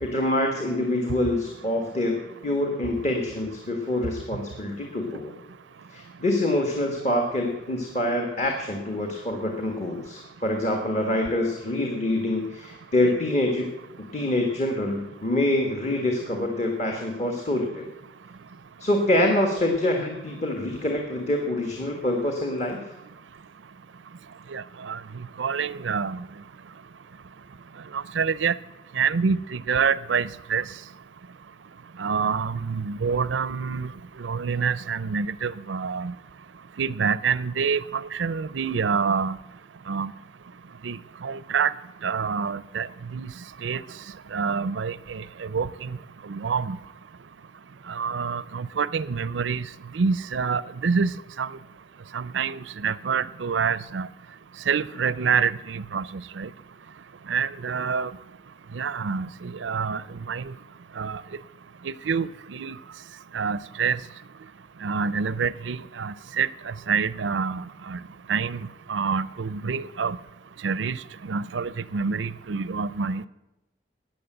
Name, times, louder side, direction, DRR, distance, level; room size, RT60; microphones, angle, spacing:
voice 1, 0.0-5.3 5.9-13.7 14.0-17.9 18.8-22.9, left 1 dB, 40° left, 3 dB, 1.6 m, -26 dB
voice 2, 24.5-26.2 27.9-28.6 29.0-30.6 32.0-33.9 34.2-36.1 36.8-39.4 39.9-40.1 40.8-41.0 41.2-41.7 42.0-42.9 43.1-43.3 43.6-43.8 44.3-46.0 46.3-46.8 47.9-49.7 49.9-51.1 51.4-51.5 52.1-54.1 54.7-56.0 56.4-56.5 57.3-58.1 58.7-60.0 60.3-60.4 61.0-61.2 61.8-62.8 63.3-64.0 64.8-68.0 68.3-68.6 68.9-70.2 70.6-71.0 71.3-73.2, right 6 dB, 90° right, 18 dB, 0.5 m, -27 dB
13.5 x 9.4 x 7.9 m, 0.99 s
head